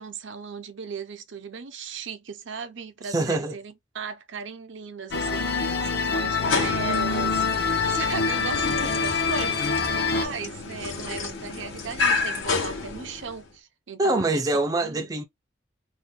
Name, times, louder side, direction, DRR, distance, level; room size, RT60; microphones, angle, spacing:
voice 1, 0.0-14.4 14.8-15.1, right 5 dB, 65° right, 0.6 m, -37 dB
voice 2, 3.1-3.5 14.0-15.2, right 2 dB, 20° right, 0.4 m, -24 dB
sound 1, 5.1-10.3, left 4 dB, 55° left, 0.7 m, -25 dB
sound 2, 6.3-13.5, left 4 dB, 75° left, 1.1 m, -30 dB
2.6 x 2.2 x 3.6 m
head